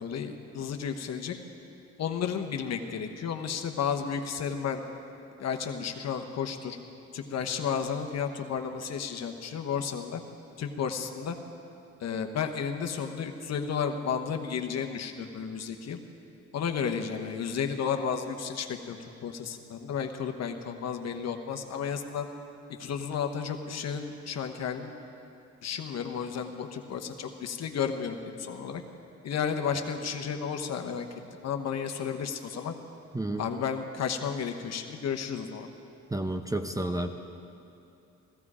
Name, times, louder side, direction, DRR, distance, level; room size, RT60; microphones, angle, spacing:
voice 1, 0.0-1.3 2.0-4.8 5.4-6.8 7.1-10.2 10.6-11.4 12.0-16.0 16.5-22.3 22.8-24.9 25.6-28.8 29.2-31.1 31.4-32.7 33.4-35.7, left 7 dB, 60° left, 5 dB, 1.1 m, -32 dB
voice 2, 36.1-37.1, right 1 dB, 10° right, 7 dB, 0.7 m, -30 dB
15.0 x 15.0 x 4.9 m, 2.7 s
cardioid pair, 90°, 30 cm